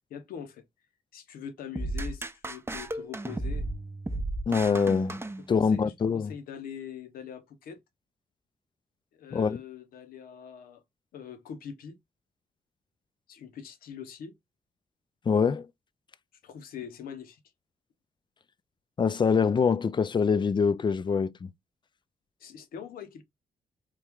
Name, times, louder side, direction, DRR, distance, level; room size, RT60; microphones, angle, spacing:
voice 1, 0.1-0.6 1.1-3.6 5.5-5.8 6.1-7.8 9.1-10.8 11.1-12.0 13.3-14.3 16.4-17.4 22.4-23.2, left 8 dB, 80° left, 0.9 m, -43 dB
sound 1, 1.8-5.9, right 2 dB, 15° right, 0.6 m, -34 dB
voice 2, 4.5-5.2 5.5-6.3 9.3-9.6 15.3-15.7 19.0-21.5, left 5 dB, 30° left, 0.4 m, -24 dB
3.2 x 2.4 x 3.5 m
supercardioid pair, 65°, 15 cm